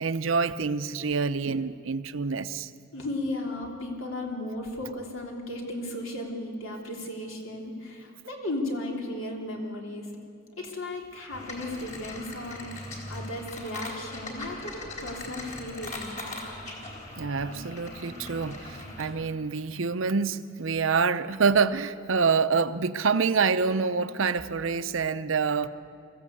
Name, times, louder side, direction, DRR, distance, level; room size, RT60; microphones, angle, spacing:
voice 1, 0.0-2.7 17.2-25.7, right 5 dB, 75° right, 12 dB, 0.7 m, -26 dB
voice 2, 2.9-10.1 10.6-16.4, left 1 dB, 80° left, 0 dB, 3.2 m, -35 dB
sound 1, 11.3-19.1, left 2 dB, 40° left, 3.8 m, -40 dB
22.5 x 15.0 x 8.5 m, 2.6 s
head